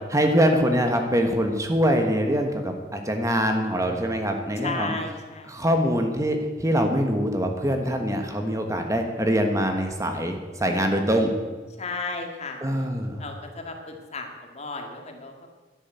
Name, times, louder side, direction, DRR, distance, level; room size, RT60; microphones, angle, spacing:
voice 1, 0.1-5.0 5.5-11.3 12.6-13.2, equal, 15° right, 5 dB, 1.3 m, -24 dB
voice 2, 4.6-5.5 11.8-12.6 13.2-15.4, left 3 dB, 35° left, 4 dB, 2.0 m, -34 dB
11.5 x 11.0 x 8.4 m, 1.3 s
head